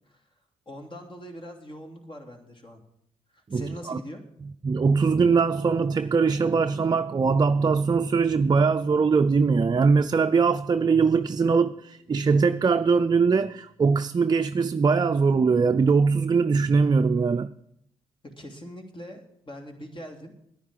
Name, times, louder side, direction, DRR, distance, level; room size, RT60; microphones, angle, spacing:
voice 1, 0.7-2.8 3.3-4.2 18.2-20.3, equal, 40° left, 3.0 m, -42 dB
voice 2, 3.5-4.0 4.6-17.5, right 5 dB, 30° right, 0.5 m, -21 dB
10.5 x 9.9 x 7.5 m
supercardioid pair, 55°, 13 cm